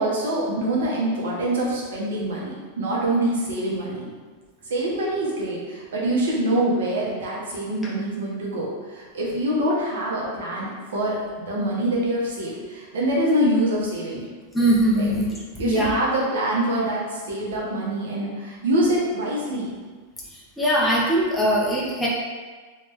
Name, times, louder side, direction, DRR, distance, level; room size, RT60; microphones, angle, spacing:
voice 1, 0.0-4.1 4.6-14.3 14.9-15.1 15.6-19.7, right 1 dB, 90° right, -4 dB, 1.2 m, -25 dB
voice 2, 14.5-15.3 15.6-16.0 20.6-22.1, right 1 dB, 5° left, -6 dB, 0.6 m, -21 dB
3.2 x 3.1 x 3.5 m, 1.4 s
supercardioid pair, 150°, 0 cm